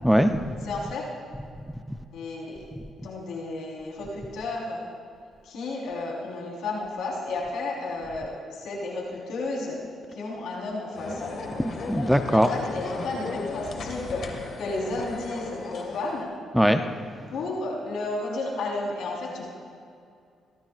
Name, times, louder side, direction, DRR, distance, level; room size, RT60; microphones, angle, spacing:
voice 1, 0.0-0.6 1.7-2.0 11.9-12.5 16.5-16.8 17.2-17.3, equal, ahead, 7 dB, 0.7 m, -21 dB
voice 2, 0.6-1.1 2.1-2.6 3.0-4.8 5.4-9.8 10.1-11.3 12.3-14.3 14.6-16.3 17.3-19.5, left 2 dB, 80° left, -3 dB, 4.3 m, -32 dB
sound 1, 10.9-16.2, left 3 dB, 55° left, 2.1 m, -35 dB
23.5 x 16.0 x 2.6 m, 2.3 s
cardioid pair, 90°, 0 cm